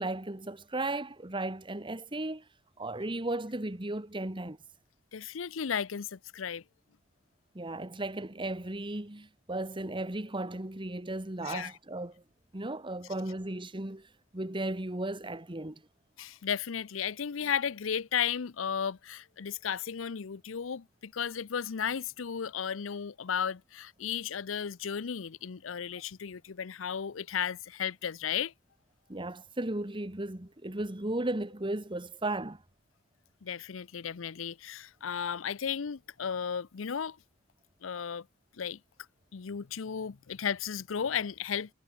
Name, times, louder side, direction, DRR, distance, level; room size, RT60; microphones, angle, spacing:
voice 1, 0.0-2.4 2.8-4.6 7.5-12.2 12.5-15.8 29.1-32.6, right 2 dB, 25° right, 1.6 m, -35 dB
voice 2, 5.1-6.6 11.4-11.7 16.2-28.5 33.4-37.2 37.8-38.2 38.6-38.8 39.3-41.7, left 7 dB, 85° left, 0.6 m, -34 dB
head